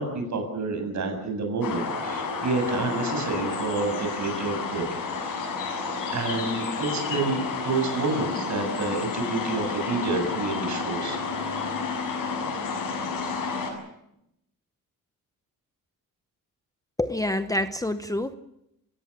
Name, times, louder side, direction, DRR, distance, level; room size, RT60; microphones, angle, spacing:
voice 1, 0.0-4.9 5.2-5.7 6.1-11.2, right 3 dB, 60° right, 5 dB, 7.3 m, -29 dB
sound 1, 1.6-13.7, left 4 dB, 75° left, 7.1 m, -31 dB
voice 2, 17.0-18.3, left 1 dB, 10° left, 10 dB, 0.8 m, -27 dB
28.5 x 17.0 x 7.3 m, 0.83 s
cardioid pair, 135°, 33 cm